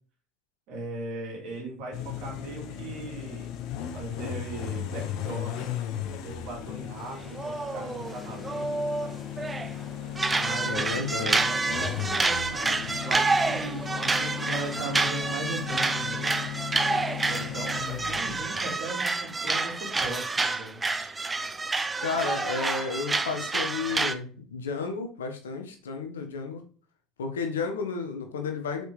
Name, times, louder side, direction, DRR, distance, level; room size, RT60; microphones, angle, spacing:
voice 1, 0.7-3.6 3.9-5.7 6.1-8.8 10.4-16.4 17.3-20.8, right 2 dB, 60° right, -1 dB, 3.2 m, -38 dB
sound 1, 1.9-18.7, left 10 dB, 55° left, 0.7 m, -36 dB
sound 2, 7.1-9.7 10.2-24.1, right 3 dB, 20° right, 0.7 m, -28 dB
voice 2, 10.6-11.5 22.0-26.6 27.2-28.8, left 4 dB, 75° left, 5 dB, 1.2 m, -32 dB
6.1 x 5.2 x 3.2 m, 0.41 s
figure-of-eight pair, 65°, 0 cm